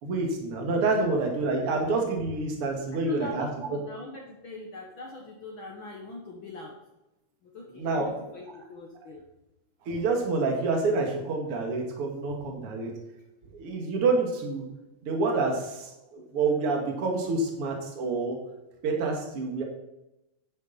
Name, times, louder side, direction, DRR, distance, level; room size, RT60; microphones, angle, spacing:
voice 1, 0.0-3.5 7.8-8.1 9.8-12.9 13.5-14.7 15.0-18.4 18.8-19.6, right 3 dB, 50° right, 2 dB, 2.6 m, -27 dB
voice 2, 3.1-6.8 7.4-9.2, left 2 dB, 55° left, 0 dB, 1.6 m, -43 dB
10.5 x 9.6 x 4.0 m, 0.94 s
omnidirectional pair, 3.4 m